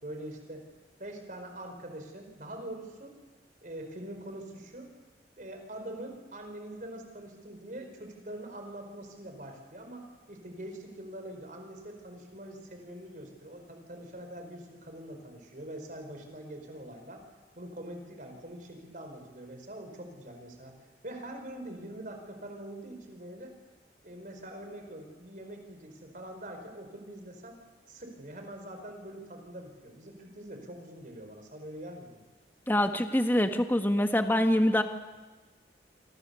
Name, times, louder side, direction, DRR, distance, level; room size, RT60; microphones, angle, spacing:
voice 1, 0.0-0.7 1.0-3.2 3.6-4.9 5.4-17.2 17.5-20.7 21.0-23.5 24.0-27.6 27.9-32.2, right 1 dB, 45° right, 5 dB, 4.9 m, -44 dB
voice 2, 32.7-34.8, left 1 dB, 10° left, 6 dB, 1.3 m, -25 dB
26.0 x 25.5 x 7.0 m, 1.2 s
head